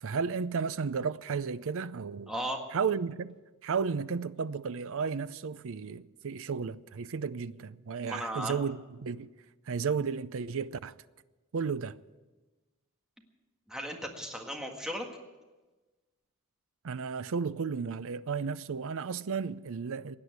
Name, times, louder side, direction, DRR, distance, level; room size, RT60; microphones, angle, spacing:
voice 1, 0.0-2.3 2.7-3.3 3.6-9.3 9.7-10.9 11.5-11.9 16.8-20.2, right 5 dB, 65° right, 0.5 m, -33 dB
voice 2, 2.3-2.6 8.0-8.6 13.7-15.1, equal, 5° right, 1.7 m, -36 dB
17.0 x 9.8 x 8.1 m
head